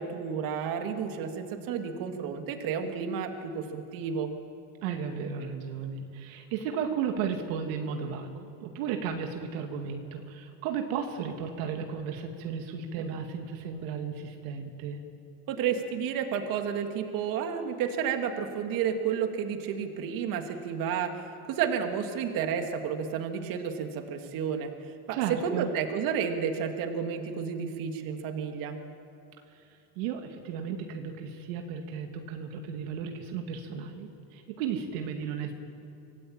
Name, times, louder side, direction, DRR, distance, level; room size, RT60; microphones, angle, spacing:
voice 1, 0.0-4.3 15.5-21.1 21.5-24.7 25.1-28.8, right 7 dB, 55° right, 4 dB, 2.6 m, -31 dB
voice 2, 4.8-15.0 25.1-25.7 29.5-29.7 30.0-35.5, right 7 dB, 75° right, 4 dB, 2.4 m, -34 dB
25.0 x 18.5 x 8.9 m, 2.9 s
supercardioid pair, 135°, 41 cm